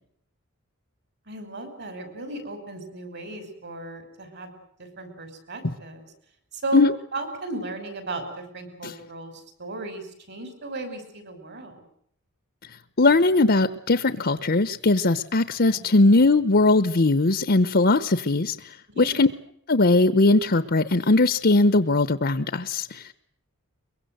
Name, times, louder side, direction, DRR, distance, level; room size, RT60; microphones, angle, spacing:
voice 1, 1.3-4.5 4.8-6.0 6.5-6.8 7.1-9.3 9.6-11.8 15.7-16.3 18.9-19.3, right 2 dB, 55° right, 9 dB, 6.2 m, -36 dB
voice 2, 13.0-19.3 19.7-23.1, left 2 dB, 50° left, 13 dB, 1.0 m, -20 dB
23.5 x 23.0 x 8.0 m, 0.69 s
head